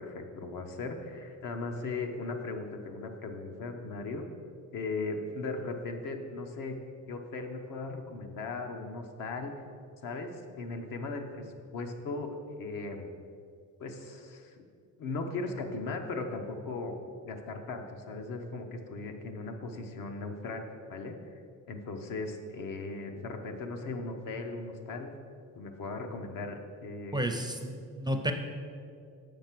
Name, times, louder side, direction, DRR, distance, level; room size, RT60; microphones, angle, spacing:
voice 1, 0.0-4.2 4.7-6.8 7.1-9.5 10.0-11.4 11.7-13.1 13.8-14.5 15.0-17.0 17.2-21.2 21.7-25.1 25.6-27.2, left 3 dB, 70° left, 4 dB, 1.0 m, -38 dB
voice 2, 27.1-28.3, right 1 dB, 15° right, 5 dB, 0.4 m, -31 dB
7.3 x 5.3 x 6.0 m, 2.4 s
cardioid pair, 125°, 33 cm